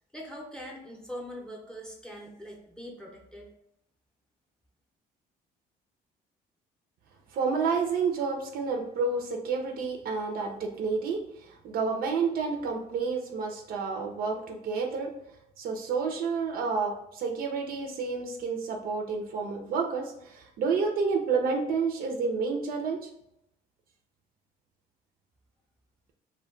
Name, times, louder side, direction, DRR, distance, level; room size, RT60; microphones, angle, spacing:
voice 1, 0.1-3.5, equal, 5° left, -1 dB, 0.6 m, -42 dB
voice 2, 7.3-15.1 15.6-23.1, right 5 dB, 60° right, 2 dB, 0.5 m, -30 dB
2.2 x 2.2 x 3.7 m, 0.78 s
cardioid pair, 110°, 17 cm